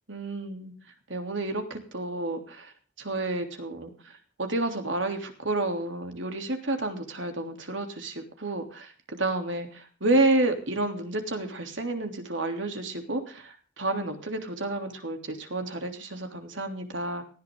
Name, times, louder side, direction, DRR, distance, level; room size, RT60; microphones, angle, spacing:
voice 1, 0.1-0.7 1.1-2.7 3.0-17.2, right 2 dB, 90° right, 5 dB, 3.3 m, -30 dB
19.0 x 15.5 x 3.9 m, 0.41 s
head